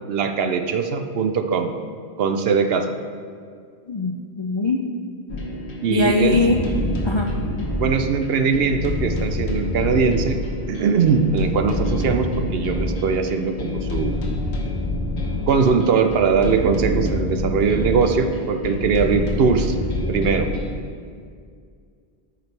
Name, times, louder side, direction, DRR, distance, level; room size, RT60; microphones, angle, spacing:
voice 1, 0.1-1.7 2.2-2.9 5.8-6.4 7.8-10.4 10.7-14.2 15.5-19.8 20.1-20.5, right 5 dB, 70° right, 7 dB, 0.8 m, -21 dB
voice 2, 3.9-4.8 5.9-6.6 7.0-7.3, left 3 dB, 50° left, 1 dB, 0.3 m, -21 dB
sound 1, 5.3-20.8, left 1 dB, 85° left, 1.3 m, -27 dB
13.0 x 5.2 x 3.3 m, 2.2 s
omnidirectional pair, 1.1 m